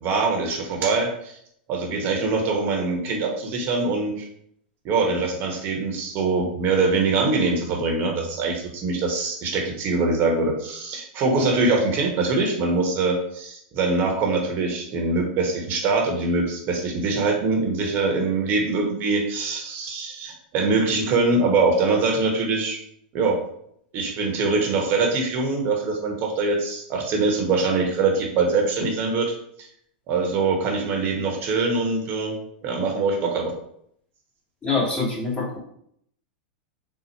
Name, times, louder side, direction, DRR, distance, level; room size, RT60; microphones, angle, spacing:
voice 1, 0.0-1.4 1.7-4.3 4.8-22.8 23.1-23.4 23.9-29.3 29.6-29.7 30.1-32.4 32.6-33.5, right 3 dB, 40° right, 2 dB, 0.9 m, -23 dB
voice 2, 34.6-35.6, left 3 dB, 20° left, -4 dB, 1.6 m, -25 dB
4.0 x 2.0 x 4.4 m, 0.69 s
hypercardioid pair, 110°, 5 cm